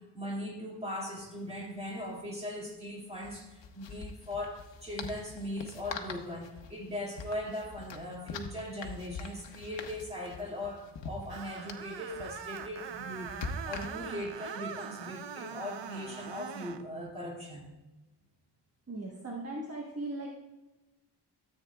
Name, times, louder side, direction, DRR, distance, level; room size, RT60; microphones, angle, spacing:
voice 1, 0.0-17.7, left 1 dB, 15° right, -3 dB, 2.3 m, -39 dB
sound 1, 1.2-1.3 1.5-1.7 3.1-14.3, left 4 dB, 85° left, 0.9 m, -44 dB
Screech, 11.3-16.8, right 8 dB, 80° right, 0.7 m, -42 dB
voice 2, 18.9-20.3, right 2 dB, 35° right, -3 dB, 1.3 m, -38 dB
13.5 x 8.3 x 2.3 m, 1.1 s
wide cardioid pair, 145°, 42 cm